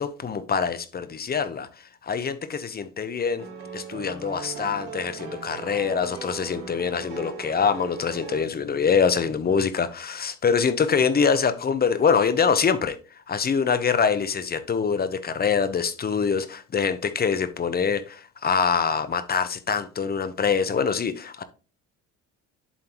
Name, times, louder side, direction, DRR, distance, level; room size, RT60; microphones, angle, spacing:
voice 1, 0.0-1.7 2.0-3.4 3.7-13.0 13.3-21.4, left 6 dB, 30° left, 0.8 m, -24 dB
sound 1, 3.4-8.4, right 6 dB, 90° right, 2.8 m, -38 dB
11.0 x 3.8 x 3.0 m
cardioid pair, 100°, 32 cm